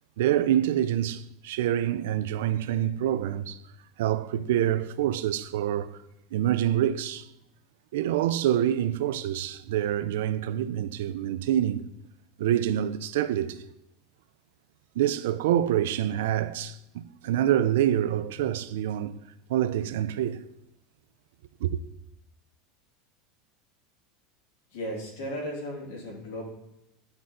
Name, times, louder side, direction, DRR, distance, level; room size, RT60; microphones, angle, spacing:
voice 1, 0.2-3.6 4.0-6.0 6.3-7.3 7.9-11.8 12.4-13.6 15.0-19.2 19.5-20.4 21.6-21.8, right 11 dB, 90° right, 0.4 m, -26 dB
voice 2, 24.7-26.4, equal, 75° left, 2.6 m, -35 dB
9.6 x 3.9 x 4.2 m
supercardioid pair, 180°, 0 cm